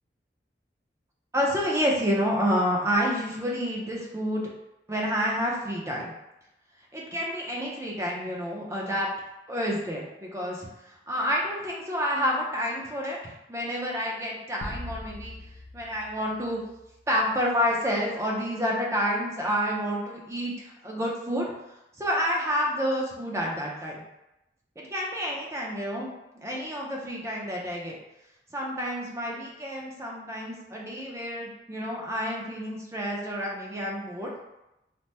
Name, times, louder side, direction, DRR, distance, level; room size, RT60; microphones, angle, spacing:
voice 1, 1.3-4.5 4.9-6.1 6.9-9.1 9.5-10.7 11.1-15.3 15.7-16.6 17.1-21.5 22.0-24.1 24.8-26.1 26.4-28.0 28.5-34.3, equal, 15° right, -2 dB, 0.5 m, -29 dB
sound 1, 14.6-17.2, left 1 dB, 85° left, 0.5 m, -41 dB
2.8 x 2.0 x 3.2 m, 0.93 s
head